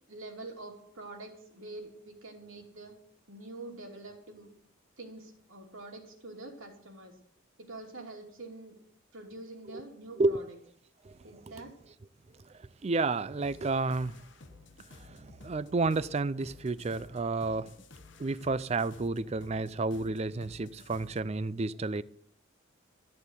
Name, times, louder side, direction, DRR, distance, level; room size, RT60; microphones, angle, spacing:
voice 1, 0.0-2.9 3.3-4.5 5.0-7.2 7.6-8.8 9.1-10.4 11.2-11.8, right 2 dB, 80° right, 3.0 m, -46 dB
voice 2, 12.8-14.1 14.9-17.7 18.2-22.0, right 3 dB, 30° right, 0.4 m, -31 dB
sound 1, 13.4-21.3, left 3 dB, 60° left, 0.9 m, -53 dB
14.0 x 7.0 x 8.0 m
head